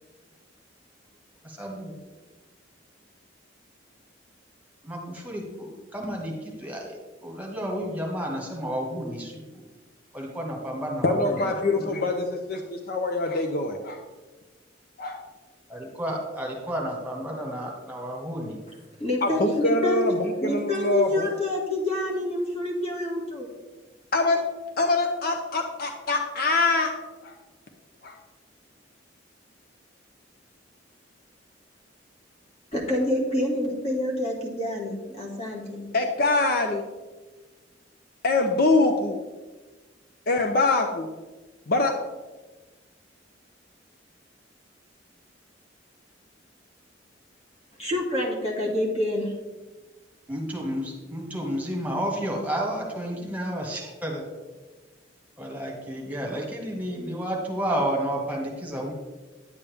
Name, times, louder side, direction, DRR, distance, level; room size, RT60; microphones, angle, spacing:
voice 1, 1.4-1.9 4.8-9.6 10.1-11.5 11.7-12.0 15.7-18.6 50.3-54.3 55.4-58.9, equal, 10° right, -1 dB, 1.6 m, -31 dB
voice 2, 11.0-14.0 15.0-15.2 19.2-21.3 24.1-24.4 24.8-26.9 27.2-27.3 28.0-28.1 35.9-36.8 38.2-39.2 40.3-41.1 41.7-41.9, left 2 dB, 55° left, 4 dB, 0.7 m, -24 dB
voice 3, 19.0-20.1 20.4-23.5 32.7-35.9 47.8-49.3, left 1 dB, 35° left, -1 dB, 2.1 m, -27 dB
9.9 x 8.4 x 3.5 m, 1.3 s
head